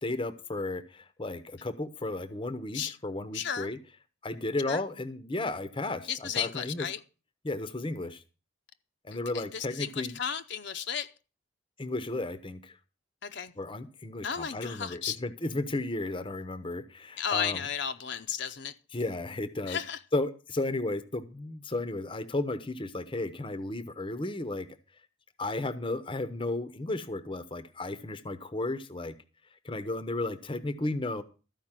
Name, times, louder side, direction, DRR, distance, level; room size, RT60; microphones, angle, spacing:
voice 1, 0.0-3.8 4.2-6.9 7.4-8.2 9.0-10.1 11.8-12.8 13.6-17.6 18.9-19.8 20.1-24.7 25.4-29.1 29.6-31.2, left 2 dB, 25° left, 0.8 m, -34 dB
voice 2, 3.3-3.7 4.7-4.8 6.1-7.0 9.3-11.1 13.2-13.5 14.2-15.2 17.2-18.7 19.7-20.0, left 8 dB, 55° left, 0.7 m, -34 dB
13.5 x 5.2 x 8.9 m
head